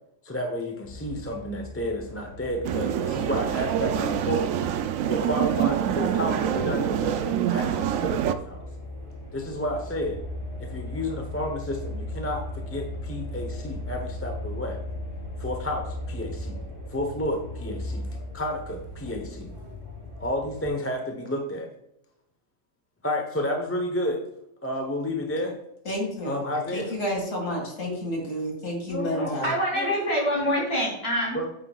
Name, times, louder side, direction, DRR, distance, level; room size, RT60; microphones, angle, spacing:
voice 1, 0.2-4.5 5.1-8.6 9.3-10.2 10.6-14.8 15.4-16.6 16.9-18.1 18.3-19.5 20.2-21.7 23.0-24.3 24.6-25.6 26.2-27.0 27.8-28.0 28.9-29.3 29.8-29.9 31.3-31.5, left 1 dB, 10° left, 2 dB, 0.9 m, -31 dB
sound 1, 0.8-20.7, left 1 dB, 20° right, 3.6 m, -38 dB
sound 2, 2.6-8.3, right 10 dB, 70° right, 1.0 m, -26 dB
voice 2, 25.8-29.5, equal, 65° left, 0 dB, 2.6 m, -30 dB
voice 3, 29.0-31.4, equal, 30° left, -4 dB, 3.9 m, -26 dB
9.5 x 9.0 x 2.4 m, 0.81 s
omnidirectional pair, 1.5 m